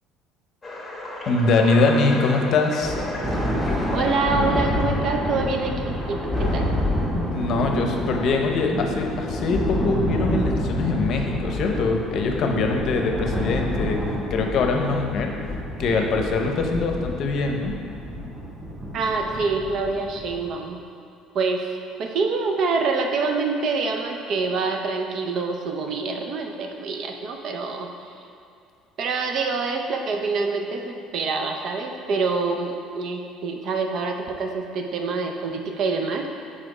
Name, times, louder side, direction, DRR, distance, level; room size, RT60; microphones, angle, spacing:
sound 1, 0.6-7.5 8.1-8.3 8.9-9.0 9.5-9.6 11.0-11.1 13.9-14.0 14.8-15.5, left 2 dB, 15° left, 1.0 m, -37 dB
voice 1, 1.3-3.0 7.3-14.0 14.3-15.3 15.8-17.7, left 3 dB, 55° left, 3 dB, 0.7 m, -23 dB
Thunder, 2.8-20.5, equal, 5° right, 1.4 m, -28 dB
voice 2, 3.9-6.7 18.9-20.8 21.3-21.7 22.0-27.9 29.0-36.3, right 4 dB, 55° right, 3 dB, 0.6 m, -26 dB
5.0 x 4.2 x 4.9 m, 2.4 s
cardioid pair, 120°, 0 cm